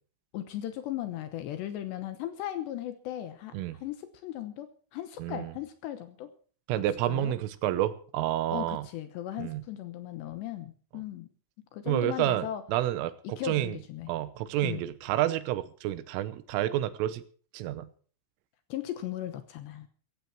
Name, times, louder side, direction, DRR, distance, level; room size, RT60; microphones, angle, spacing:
voice 1, 0.3-3.5 3.8-6.3 7.1-7.4 8.5-11.3 11.7-12.6 13.4-14.1 14.6-14.8 18.7-19.9, left 12 dB, 75° left, 10 dB, 2.8 m, -37 dB
voice 2, 6.7-8.9 9.4-9.6 11.9-13.8 14.1-17.2 17.5-17.9, right 13 dB, 80° right, 14 dB, 3.5 m, -29 dB
15.5 x 15.0 x 4.6 m, 0.43 s
omnidirectional pair, 5.8 m